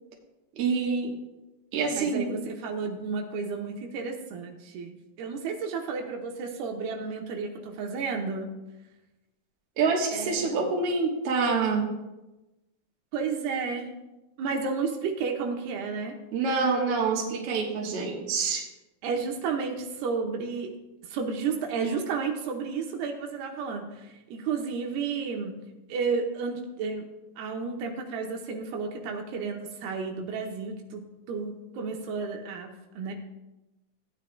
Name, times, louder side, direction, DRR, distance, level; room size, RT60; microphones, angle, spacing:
voice 1, 0.6-1.2 1.7-2.4 9.8-11.9 16.3-18.7, right 4 dB, 55° right, -1 dB, 1.7 m, -26 dB
voice 2, 2.0-8.5 10.1-10.7 13.1-13.9 14.4-16.2 19.0-20.7 21.1-25.6 25.9-27.1 27.4-33.1, right 5 dB, 85° right, 2 dB, 2.8 m, -32 dB
16.5 x 9.2 x 2.3 m, 1.0 s
omnidirectional pair, 4.5 m